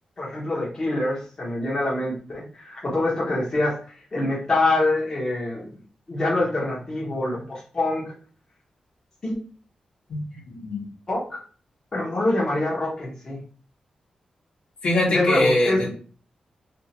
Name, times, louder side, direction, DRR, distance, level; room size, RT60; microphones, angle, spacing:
voice 1, 0.2-3.8 4.1-5.7 6.1-8.1 9.2-9.3 11.1-11.4 11.9-13.4 15.0-15.9, left 2 dB, 30° left, -6 dB, 1.0 m, -25 dB
voice 2, 10.1-10.8 14.8-15.9, left 1 dB, 55° left, -3 dB, 1.2 m, -23 dB
2.7 x 2.4 x 2.8 m, 0.41 s
wide cardioid pair, 165°, 2 cm